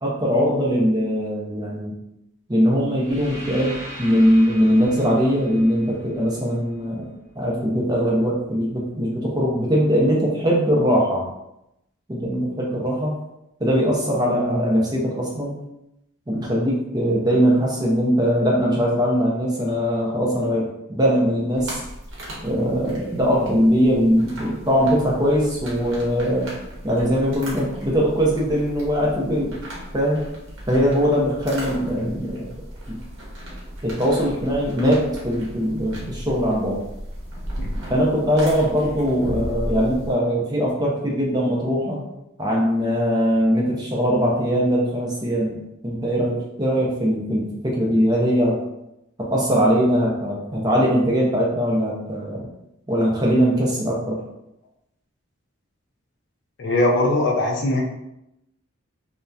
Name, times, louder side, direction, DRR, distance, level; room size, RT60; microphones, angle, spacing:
voice 1, 0.0-1.9 2.5-7.1 7.4-11.3 12.1-13.1 13.6-15.5 16.3-21.8 22.4-26.5 26.8-29.5 29.9-30.2 30.7-32.5 32.9-33.0 33.8-36.8 37.9-42.0 42.4-48.6 49.2-52.5 52.9-54.2, equal, 20° right, -3 dB, 0.5 m, -21 dB
sound 1, 2.9-7.0, equal, 35° right, 1.1 m, -40 dB
sound 2, 21.5-40.1, equal, 65° right, 0.8 m, -36 dB
voice 2, 56.6-57.8, left 1 dB, 55° left, 0 dB, 0.4 m, -20 dB
2.7 x 2.1 x 2.3 m, 0.86 s
head